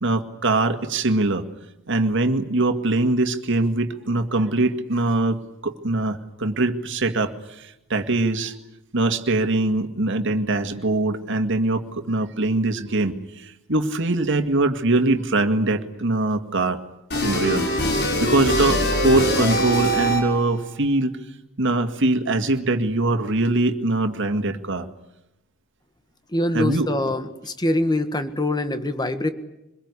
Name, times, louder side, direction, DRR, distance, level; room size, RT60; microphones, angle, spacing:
voice 1, 0.0-1.4 1.9-5.4 5.6-7.3 7.6-8.5 8.9-16.8 17.2-17.7 18.2-21.1 21.6-24.9 26.5-26.9, right 2 dB, 60° right, 7 dB, 2.0 m, -22 dB
sound 1, 17.1-20.5, equal, 50° left, 5.9 m, -23 dB
voice 2, 26.3-29.3, left 1 dB, 20° left, 10 dB, 1.6 m, -24 dB
25.0 x 21.5 x 9.8 m, 0.90 s
head